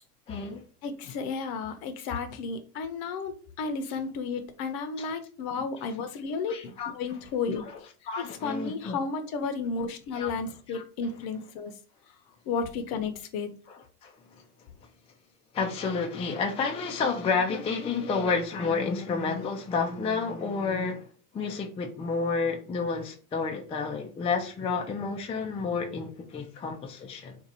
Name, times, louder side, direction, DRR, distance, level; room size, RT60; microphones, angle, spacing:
voice 1, 0.3-0.6 3.9-4.0 5.0-5.1 6.5-6.9 7.5-7.8 8.1-9.0 10.1-10.3 10.7-10.8 13.7-14.4 15.5-21.0 21.3-27.4, left 4 dB, 15° left, 0.4 m, -30 dB
voice 2, 0.8-7.6 8.4-11.7 12.5-13.5, left 5 dB, 50° left, 0.8 m, -33 dB
2.6 x 2.5 x 4.2 m
supercardioid pair, 105°, 46 cm